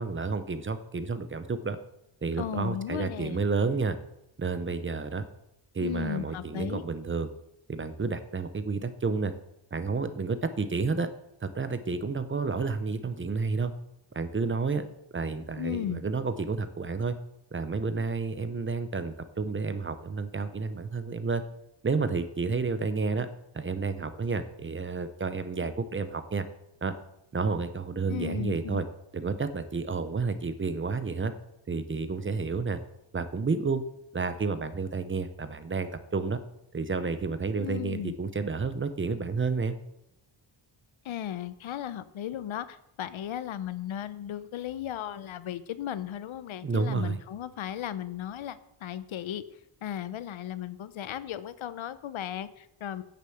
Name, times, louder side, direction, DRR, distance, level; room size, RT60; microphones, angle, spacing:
voice 1, 0.0-1.8 2.2-4.0 4.4-5.2 5.7-7.3 7.7-9.3 9.7-11.1 11.4-13.7 14.1-14.8 15.1-17.2 17.5-21.4 21.8-23.3 23.5-26.5 26.8-26.9 27.3-28.8 29.1-31.3 31.7-32.8 33.1-33.8 34.1-36.4 36.7-39.8 46.6-47.2, right 4 dB, 25° right, 11 dB, 0.7 m, -30 dB
voice 2, 2.4-3.4 5.8-6.8 15.6-16.0 28.1-28.8 37.6-38.1 41.0-49.4 49.8-53.0, left 11 dB, 70° left, 14 dB, 0.8 m, -36 dB
10.5 x 6.7 x 7.7 m, 0.80 s
wide cardioid pair, 175°, 49 cm